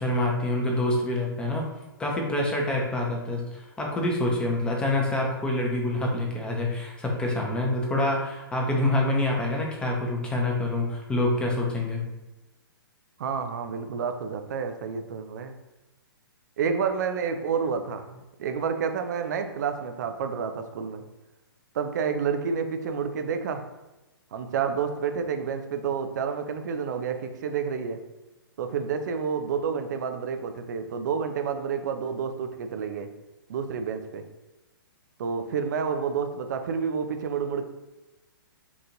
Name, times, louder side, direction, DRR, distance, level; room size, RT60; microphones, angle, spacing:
voice 1, 0.0-1.6 2.0-12.0, left 1 dB, 10° left, -1 dB, 0.6 m, -26 dB
voice 2, 13.2-15.6 16.6-21.0 21.7-23.6 24.3-28.0 28.6-33.1 33.5-34.2 35.2-37.6, right 6 dB, 50° right, 7 dB, 0.4 m, -29 dB
2.9 x 2.5 x 3.8 m, 1.0 s
figure-of-eight pair, 120°, 13 cm